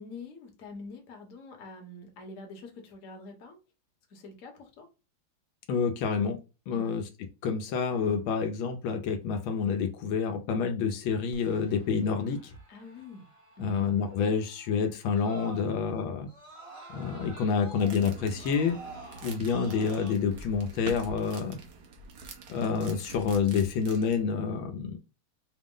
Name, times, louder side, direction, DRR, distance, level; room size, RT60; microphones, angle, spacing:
voice 1, 0.0-3.6 4.1-4.9 6.7-7.0 12.7-13.2 13.6-13.8, left 3 dB, 45° left, 2 dB, 1.1 m, -45 dB
voice 2, 5.7-6.4 6.7-7.0 7.4-12.5 13.6-16.3 16.9-18.8 19.2-21.6 22.5-25.0, left 6 dB, 80° left, 5 dB, 1.4 m, -28 dB
Screaming, 11.3-15.9 16.3-20.1, right 2 dB, 30° right, 0.6 m, -49 dB
sound 1, 17.8-24.2, right 4 dB, 65° right, 1.0 m, -45 dB
5.0 x 2.0 x 3.7 m, 0.30 s
omnidirectional pair, 2.3 m